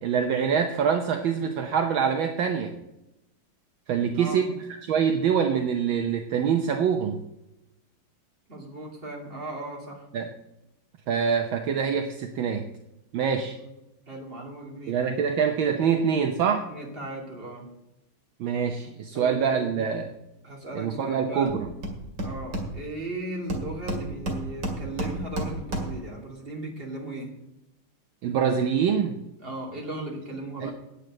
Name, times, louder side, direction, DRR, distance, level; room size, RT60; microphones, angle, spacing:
voice 1, 0.0-2.7 3.9-7.1 10.1-10.3 11.1-12.6 13.1-13.6 14.9-16.7 18.4-20.1 20.7-21.7 28.2-29.2 30.6-30.7, right 7 dB, 70° right, 5 dB, 1.6 m, -25 dB
voice 2, 8.5-10.1 13.6-13.7 14.1-15.0 16.7-17.7 19.1-19.8 20.4-21.6 22.2-27.3 29.4-30.7, right 1 dB, 25° right, -1 dB, 2.8 m, -37 dB
Hammer, 21.5-21.6 21.8-23.1 23.5-26.1, right 1 dB, 55° right, 2.7 m, -32 dB
9.2 x 8.5 x 7.6 m, 0.90 s
omnidirectional pair, 2.4 m